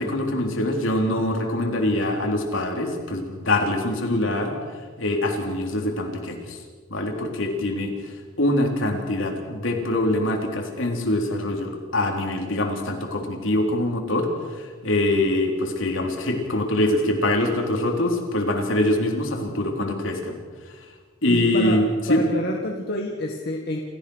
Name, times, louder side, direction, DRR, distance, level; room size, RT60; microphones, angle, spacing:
voice 1, 0.0-4.5 5.0-6.6 6.9-7.9 8.4-14.3 14.6-20.3 21.2-22.2, left 1 dB, 70° left, 2 dB, 3.6 m, -24 dB
voice 2, 21.3-21.8 22.1-23.8, left 1 dB, 50° left, 1 dB, 1.8 m, -28 dB
28.5 x 15.0 x 6.4 m, 1.5 s
head